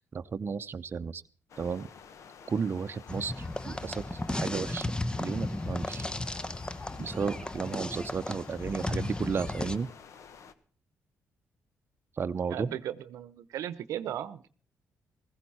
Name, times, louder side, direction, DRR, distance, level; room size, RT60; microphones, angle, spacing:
voice 1, 0.1-1.2 1.6-1.9 2.5-4.9 5.2-6.0 7.0-9.9 12.2-12.7, right 5 dB, 45° right, 9 dB, 0.7 m, -33 dB
sound 1, 1.5-10.5, left 6 dB, 65° left, 1.3 m, -51 dB
sound 2, 3.1-9.8, left 2 dB, 15° left, 0.9 m, -35 dB
voice 2, 12.5-14.4, right 11 dB, 75° right, 15 dB, 0.8 m, -36 dB
16.5 x 15.5 x 4.3 m, 0.41 s
supercardioid pair, 60°, 6 cm